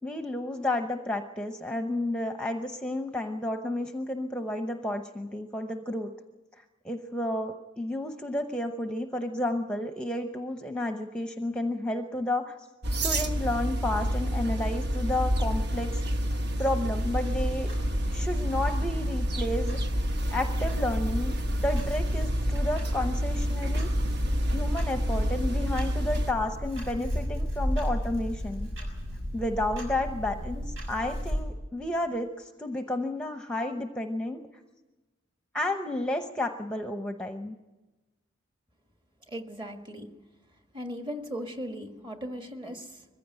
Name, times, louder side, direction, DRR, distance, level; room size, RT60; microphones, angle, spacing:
voice 1, 0.0-6.1 6.8-12.5 13.0-16.0 16.6-17.7 18.1-19.8 20.3-21.3 21.6-23.9 24.5-28.7 29.3-34.4 35.5-37.6, left 1 dB, 5° left, 5 dB, 0.8 m, -31 dB
sound 1, 12.8-26.3, equal, 55° right, 1.1 m, -29 dB
Clock, 16.9-31.4, equal, 80° right, 6.7 m, -34 dB
voice 2, 39.3-40.1 40.7-43.1, equal, 25° right, 5 dB, 1.6 m, -38 dB
22.0 x 15.5 x 8.9 m, 1.1 s
head